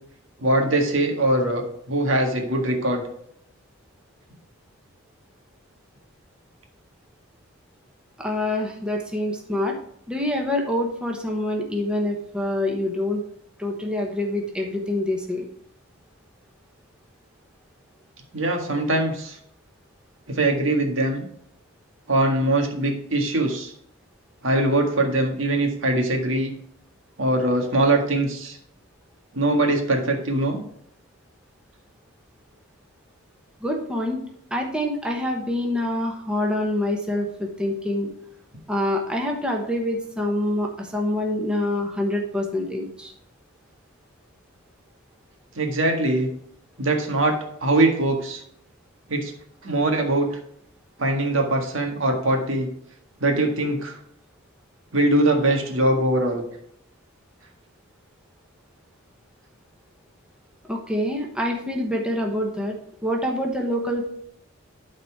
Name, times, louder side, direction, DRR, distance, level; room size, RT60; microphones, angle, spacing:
voice 1, 0.4-1.6 1.9-3.0 18.3-19.4 20.3-21.3 22.1-23.7 24.4-26.6 27.2-28.6 29.3-30.6 45.6-46.3 46.8-48.4 49.1-49.3 49.6-50.3 51.0-52.7 53.2-54.0 54.9-56.4, right 1 dB, 75° right, 3 dB, 1.8 m, -22 dB
voice 2, 8.2-9.8 10.1-13.2 13.6-15.4 33.6-34.2 34.5-38.1 38.7-43.1 60.6-62.8 63.0-64.1, left 1 dB, 5° right, 0 dB, 1.1 m, -26 dB
12.0 x 4.3 x 4.6 m, 0.70 s
head